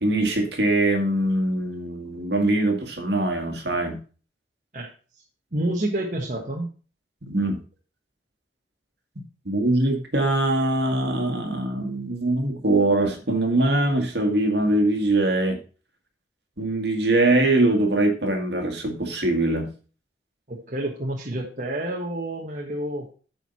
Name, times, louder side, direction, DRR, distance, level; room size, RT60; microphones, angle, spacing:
voice 1, 0.0-4.0 7.2-7.6 9.5-15.6 16.6-19.7, right 2 dB, 65° right, 4 dB, 2.0 m, -22 dB
voice 2, 5.5-6.7 20.5-23.1, right 1 dB, 45° right, -1 dB, 1.3 m, -29 dB
9.0 x 4.7 x 5.5 m, 0.37 s
head